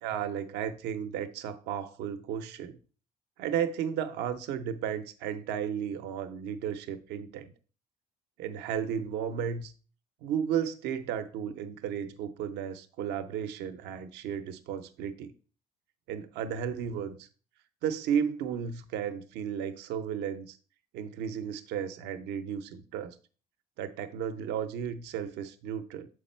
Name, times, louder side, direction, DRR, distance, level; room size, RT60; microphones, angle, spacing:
voice 1, 0.0-2.8 3.4-7.5 8.4-9.7 10.2-15.3 16.1-17.3 17.8-20.6 20.9-23.2 23.8-26.1, right 8 dB, 85° right, 0.7 m, -34 dB
7.3 x 4.8 x 4.3 m
cardioid pair, 110°, 17 cm